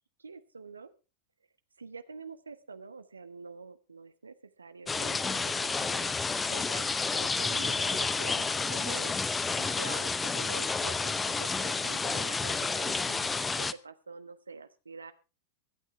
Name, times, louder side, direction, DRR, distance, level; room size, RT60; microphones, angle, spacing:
voice 1, 0.2-0.9 1.8-6.1 6.5-9.1 9.5-15.1, right 4 dB, 75° right, 10 dB, 1.3 m, -46 dB
sound 1, 4.9-13.7, left 4 dB, 15° left, 0.7 m, -30 dB
24.5 x 9.0 x 3.4 m, 0.32 s
figure-of-eight pair, 90°, 0 cm